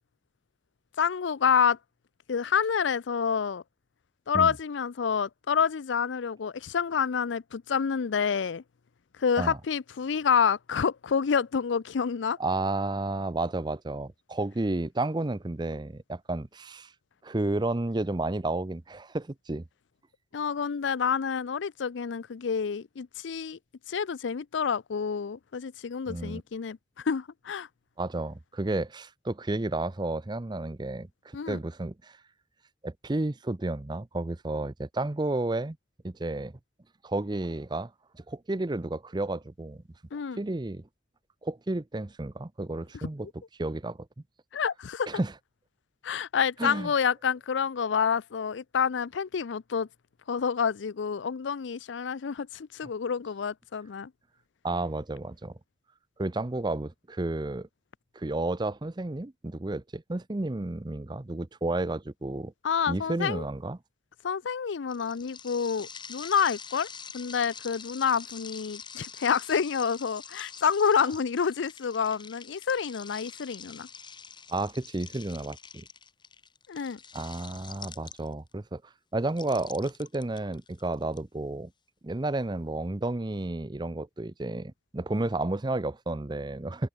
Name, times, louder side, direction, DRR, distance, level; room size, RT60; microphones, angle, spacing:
voice 1, 1.0-1.8 2.3-3.6 4.3-8.6 9.2-12.4 20.3-23.6 23.9-26.8 27.0-27.7 31.3-31.6 40.1-40.4 44.5-45.1 46.0-49.9 50.3-54.1 62.6-63.4 64.2-66.9 67.1-73.9 76.7-77.0, left 6 dB, 85° left, 0.5 m, -28 dB
voice 2, 12.4-16.9 17.2-19.6 26.1-26.4 28.0-32.2 32.8-35.8 36.0-36.5 37.0-39.8 40.4-40.8 41.4-43.3 43.6-44.0 45.1-45.3 46.6-46.9 54.6-55.6 56.2-57.7 58.1-62.5 62.9-63.8 74.5-75.8 77.1-78.8 79.1-81.7 82.0-86.9, right 2 dB, 25° right, 0.6 m, -31 dB
sound 1, 64.9-78.5 79.3-81.2, left 6 dB, 25° left, 6.9 m, -46 dB
head